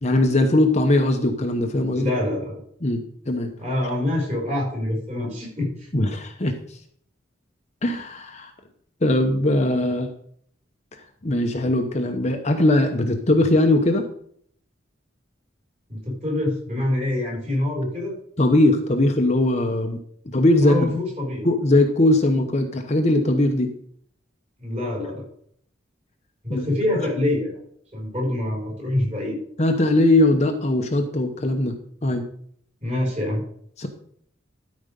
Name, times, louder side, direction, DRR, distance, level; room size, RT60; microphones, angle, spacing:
voice 1, 0.0-2.1 2.8-3.5 5.9-6.5 7.8-8.5 9.0-10.1 11.2-14.0 18.4-20.0 20.3-21.0 21.4-23.7 26.5-26.7 29.6-31.7 32.0-32.2 33.8-33.9, left 1 dB, 35° left, 5 dB, 0.9 m, -20 dB
voice 2, 1.9-2.6 3.6-5.9 15.9-18.1 20.6-21.5 24.6-25.2 26.4-27.6 27.9-29.4 32.8-33.4, left 1 dB, 35° right, -3 dB, 5.2 m, -25 dB
12.5 x 5.2 x 5.3 m, 0.63 s
head